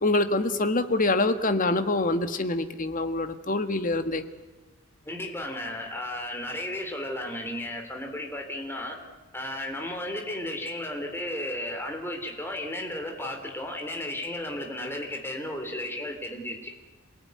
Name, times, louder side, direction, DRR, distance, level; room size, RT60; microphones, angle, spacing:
voice 1, 0.0-4.2, left 2 dB, 40° left, 9 dB, 1.6 m, -25 dB
voice 2, 5.1-9.0 9.3-16.7, left 1 dB, 10° left, 2 dB, 3.6 m, -34 dB
27.5 x 18.5 x 9.7 m, 1.2 s
head